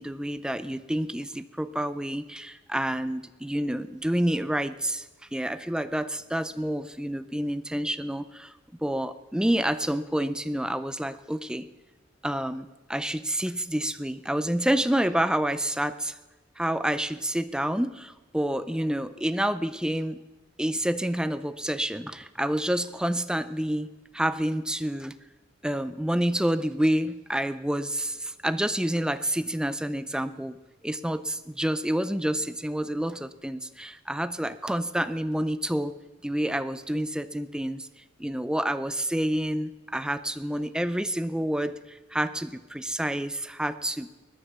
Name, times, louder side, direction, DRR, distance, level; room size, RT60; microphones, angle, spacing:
voice 1, 0.0-5.1 5.3-8.5 8.8-11.7 12.2-16.2 16.6-20.2 20.6-23.9 24.1-25.2 25.6-30.6 30.8-35.9 36.2-37.9 38.2-44.1, right 1 dB, 5° right, 12 dB, 0.5 m, -28 dB
20.5 x 10.0 x 6.9 m, 1.1 s
head